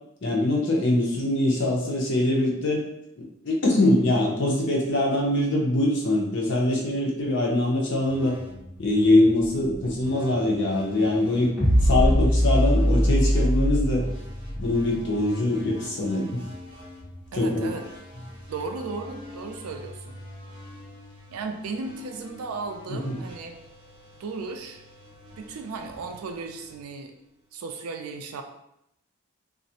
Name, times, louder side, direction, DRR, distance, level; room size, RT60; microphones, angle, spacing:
voice 1, 0.2-2.8 3.2-8.4 8.8-11.5 11.8-14.0 14.6-16.4 17.4-17.7 22.9-23.2, left 1 dB, 55° left, -2 dB, 0.6 m, -23 dB
sound 1, 8.1-27.6, left 1 dB, 20° right, 0.6 m, -45 dB
sound 2, 11.6-15.0, equal, ahead, 1.2 m, -21 dB
voice 2, 17.3-17.8 18.5-20.2 21.3-23.5 24.2-24.8 25.4-27.1 27.5-28.4, right 4 dB, 80° right, 5 dB, 0.3 m, -35 dB
2.4 x 2.1 x 2.7 m, 0.79 s
head